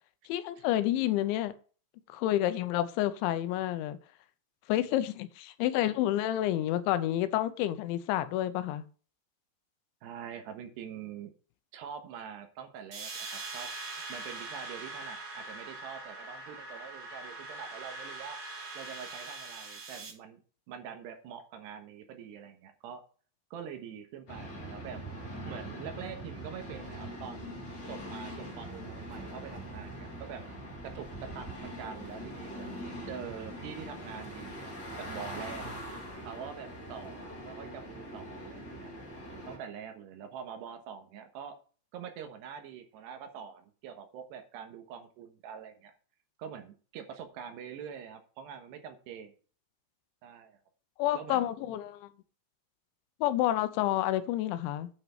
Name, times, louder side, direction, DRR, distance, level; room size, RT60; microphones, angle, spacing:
voice 1, 0.3-1.5 2.1-4.0 4.7-8.9 51.0-52.1 53.2-54.9, left 13 dB, 90° left, 3.1 m, -29 dB
voice 2, 10.0-11.3 11.7-13.7 14.1-18.4 18.7-20.4 20.7-23.0 23.5-25.0 25.5-27.4 27.9-30.4 30.8-32.7 33.1-35.7 36.2-38.9 39.5-41.5 41.9-45.9 46.4-49.3 50.2-50.6 51.1-51.8, right 8 dB, 75° right, 3.2 m, -44 dB
sound 1, 12.9-20.1, right 3 dB, 45° right, 1.4 m, -42 dB
sound 2, 24.3-39.6, equal, 30° left, 2.6 m, -42 dB
9.2 x 6.0 x 5.8 m
omnidirectional pair, 5.2 m